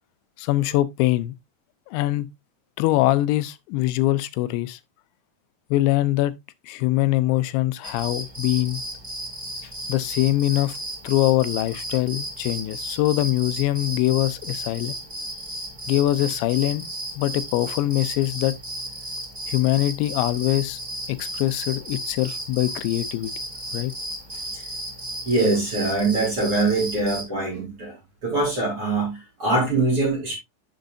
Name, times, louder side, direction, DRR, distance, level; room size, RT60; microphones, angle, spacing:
voice 1, 0.4-1.3 1.9-2.3 2.8-4.8 5.7-6.3 6.6-8.8 9.6-10.8 11.0-14.9 15.9-16.8 17.2-18.5 19.5-20.8 21.1-23.3 23.7-23.9, left 16 dB, 85° left, 3.0 m, -23 dB
sound 1, 7.8-27.2, right 1 dB, 15° right, 1.6 m, -34 dB
voice 2, 25.2-28.0 28.2-30.3, right 3 dB, 30° right, 4.7 m, -23 dB
10.5 x 7.1 x 2.6 m
omnidirectional pair, 5.1 m